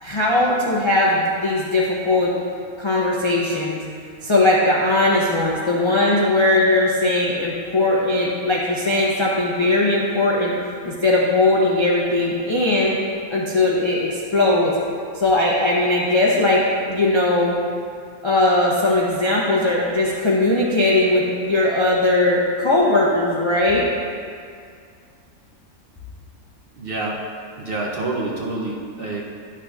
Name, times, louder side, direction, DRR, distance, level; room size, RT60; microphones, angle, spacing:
voice 1, 0.0-2.3 2.8-3.8 4.2-10.5 10.8-13.0 13.3-14.7 15.1-17.6 18.2-23.8, left 2 dB, 40° left, -5 dB, 0.4 m, -19 dB
voice 2, 26.8-27.2 27.6-29.2, right 2 dB, 55° right, -2 dB, 0.7 m, -27 dB
10.0 x 5.9 x 2.3 m, 2.3 s
omnidirectional pair, 1.5 m